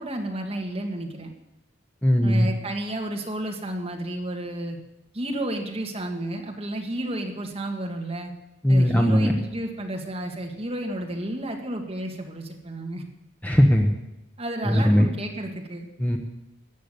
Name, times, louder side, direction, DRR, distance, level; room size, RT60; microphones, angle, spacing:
voice 1, 0.0-1.3 2.2-4.8 5.1-8.3 8.7-13.0 14.4-15.9, right 1 dB, 30° right, 2 dB, 2.0 m, -31 dB
voice 2, 2.0-2.5 8.6-9.3 13.4-13.9 14.6-15.1 16.0-16.2, equal, 10° left, 1 dB, 1.2 m, -19 dB
14.0 x 8.5 x 9.4 m, 0.92 s
head